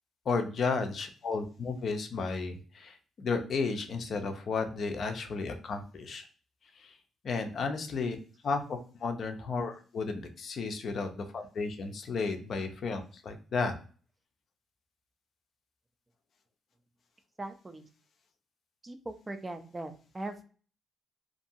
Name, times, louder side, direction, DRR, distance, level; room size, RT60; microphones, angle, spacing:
voice 1, 0.3-6.2 6.8-6.9 7.2-8.2 8.4-13.7, left 4 dB, 55° left, 6 dB, 0.6 m, -33 dB
voice 2, 17.4-17.9 18.8-20.4, right 2 dB, 20° right, 7 dB, 0.5 m, -40 dB
2.6 x 2.6 x 2.6 m, 0.39 s
cardioid pair, 90°, 0 cm